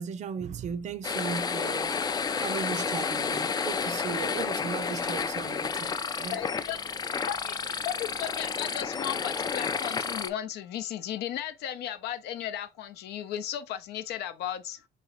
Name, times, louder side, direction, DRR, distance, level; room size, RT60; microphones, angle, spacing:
voice 1, 0.0-1.9 2.4-6.4, right 7 dB, 45° right, 0.5 m, -36 dB
sound 1, 1.0-10.3, left 5 dB, 25° left, 0.3 m, -31 dB
voice 2, 6.3-6.8 7.1-14.9, left 11 dB, 75° left, 0.6 m, -35 dB
4.0 x 2.9 x 2.9 m
cardioid pair, 110°, 17 cm